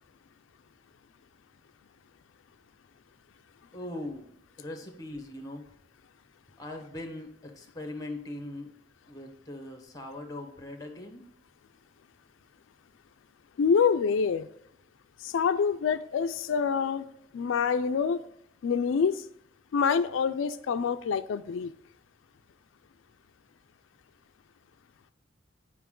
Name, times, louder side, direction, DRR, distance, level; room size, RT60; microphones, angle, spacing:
voice 1, 3.7-4.3 4.6-5.7 6.6-8.7 9.1-11.2, left 1 dB, 20° left, 5 dB, 1.1 m, -40 dB
voice 2, 13.6-14.5 15.2-17.1 17.3-18.2 18.6-19.2 19.7-21.7, left 6 dB, 90° left, 10 dB, 0.4 m, -26 dB
8.0 x 5.1 x 3.7 m, 0.74 s
head